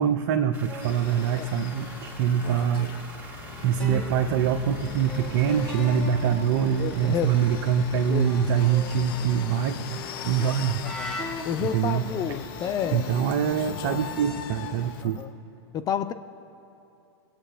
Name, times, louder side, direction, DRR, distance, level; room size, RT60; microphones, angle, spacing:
voice 1, 0.0-2.9 3.6-10.0 10.2-10.8 11.3-12.4 12.9-15.2, right 8 dB, 50° right, 4 dB, 0.7 m, -24 dB
sound 1, 0.5-15.2, right 1 dB, 15° right, 1.8 m, -45 dB
sound 2, 0.7-3.1 3.7-7.6 8.2-15.0, left 2 dB, 5° left, 2.0 m, -41 dB
sound 3, 0.8-15.1, left 8 dB, 55° left, 0.8 m, -40 dB
voice 2, 6.8-7.4 8.1-8.3 11.0-11.2 11.4-13.2 13.8-14.0 15.0-15.3 15.7-16.1, left 8 dB, 30° left, 10 dB, 0.5 m, -30 dB
22.5 x 8.2 x 3.5 m, 2.7 s
hypercardioid pair, 110°, 14 cm